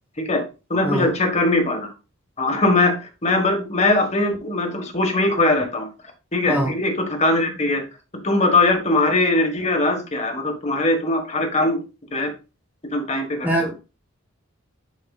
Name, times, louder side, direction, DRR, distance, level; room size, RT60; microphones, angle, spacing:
voice 1, 0.7-1.9 2.4-5.9 6.3-7.8 8.2-11.8 12.1-12.3 12.9-13.5, left 2 dB, 30° left, 3 dB, 1.4 m, -21 dB
voice 2, 13.4-13.8, right 1 dB, 10° right, 1 dB, 1.2 m, -22 dB
11.0 x 4.7 x 2.4 m, 0.30 s
head